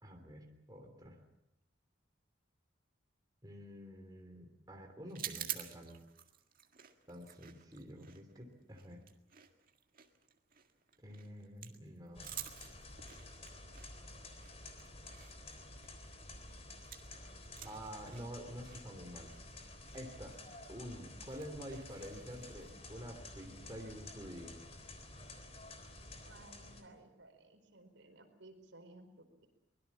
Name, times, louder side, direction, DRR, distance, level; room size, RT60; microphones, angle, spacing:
voice 1, 0.0-1.2 3.4-6.0 7.1-9.0 11.0-12.4 17.6-19.3 19.9-20.4 20.7-24.6, equal, 20° right, 2 dB, 3.2 m, -48 dB
sound 1, 5.1-17.2 17.4-22.7, right 11 dB, 50° right, 1.9 m, -50 dB
sound 2, 12.1-26.8, left 2 dB, 35° left, 3.6 m, -51 dB
voice 2, 26.2-29.5, right 2 dB, 75° right, 5 dB, 4.6 m, -58 dB
24.0 x 21.0 x 7.2 m, 0.84 s
head